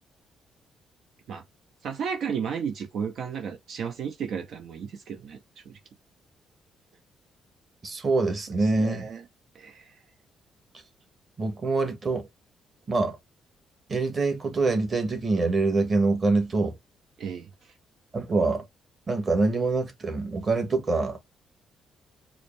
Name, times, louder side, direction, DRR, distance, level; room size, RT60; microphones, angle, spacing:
voice 1, 1.8-5.4 5.6-5.8 8.5-9.2 9.5-10.0 17.2-17.7, right 7 dB, 70° right, 0.8 m, -34 dB
voice 2, 7.8-9.0 11.4-12.3 12.9-13.2 13.9-16.8 18.1-18.6 19.1-21.2, right 3 dB, 35° right, 1.4 m, -25 dB
4.8 x 2.1 x 3.2 m
cardioid pair, 90°, 0 cm